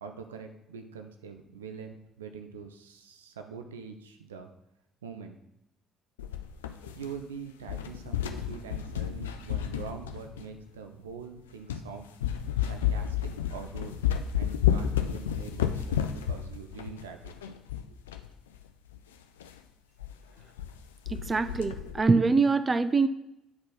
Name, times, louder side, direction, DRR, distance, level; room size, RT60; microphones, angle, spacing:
voice 1, 0.0-4.5 5.0-5.4 7.0-12.1 12.6-14.0 14.3-17.6, right 6 dB, 85° right, 6 dB, 0.5 m, -44 dB
sound 1, 6.2-7.3 7.6-10.6 11.2-11.3 11.7-11.9 12.2-18.3 18.5-18.6 18.9-19.0 19.4-19.6 20.0-20.1 20.4-20.8 21.1-22.0, left 9 dB, 85° left, 0.4 m, -31 dB
voice 2, 21.1-23.1, right 4 dB, 30° right, 12 dB, 0.4 m, -24 dB
9.6 x 4.3 x 4.0 m, 0.85 s
hypercardioid pair, 50°, 0 cm